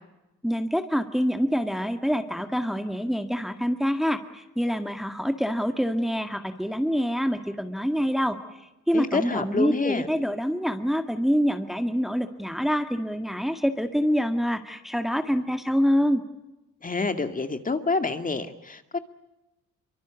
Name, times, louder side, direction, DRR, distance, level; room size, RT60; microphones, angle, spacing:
voice 1, 0.4-8.4 8.9-16.2, equal, ahead, 7 dB, 1.9 m, -26 dB
voice 2, 8.9-10.1 16.8-19.0, left 3 dB, 25° left, 8 dB, 2.2 m, -27 dB
24.0 x 24.0 x 8.3 m, 0.96 s
cardioid pair, 90°, 30 cm